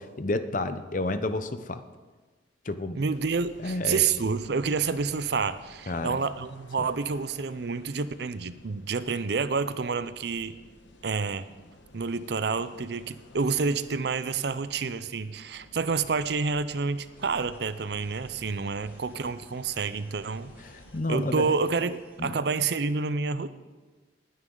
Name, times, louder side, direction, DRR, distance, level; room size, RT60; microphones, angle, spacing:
voice 1, 0.0-1.8 2.6-3.0 3.6-4.0 5.9-6.2 6.8-6.9 20.6-21.5 22.2-22.4, left 2 dB, 40° left, 10 dB, 0.7 m, -31 dB
voice 2, 2.9-10.6 11.0-11.5 11.9-20.5 21.1-23.5, right 5 dB, 55° right, 14 dB, 0.5 m, -29 dB
sound 1, 3.1-21.0, left 1 dB, 65° left, 1.2 m, -54 dB
sound 2, 17.2-22.2, right 1 dB, 10° right, 2.3 m, -57 dB
19.5 x 9.6 x 3.9 m, 1.3 s
head